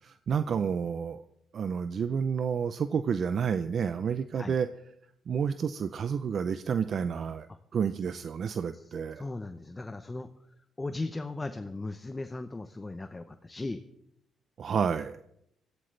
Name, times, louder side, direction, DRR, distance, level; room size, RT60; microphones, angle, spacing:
voice 1, 0.0-1.2 1.5-4.7 5.3-7.5 7.7-9.2 14.6-15.2, right 7 dB, 55° right, 11 dB, 0.6 m, -30 dB
voice 2, 9.2-10.3 10.8-13.8, left 2 dB, 20° left, 9 dB, 0.8 m, -37 dB
20.5 x 15.0 x 3.3 m, 0.76 s
cardioid pair, 90°, 0 cm